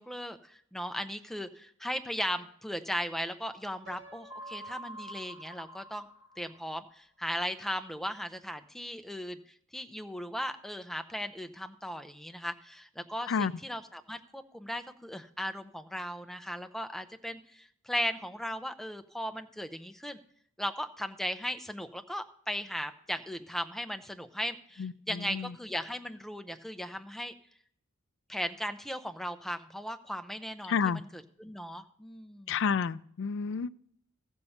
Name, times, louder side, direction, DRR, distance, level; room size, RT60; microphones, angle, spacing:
voice 1, 0.0-6.1 6.4-9.4 9.7-20.2 20.6-27.3 28.3-32.6, equal, ahead, 7 dB, 0.5 m, -37 dB
Piano, 3.9-5.8, right 1 dB, 75° right, 1.9 m, -55 dB
sound 1, 4.3-6.9, right 1 dB, 25° right, 3.9 m, -46 dB
voice 2, 24.8-25.5 30.7-31.0 32.5-33.7, left 6 dB, 60° left, 15 dB, 0.4 m, -30 dB
14.5 x 5.4 x 7.0 m, 0.66 s
head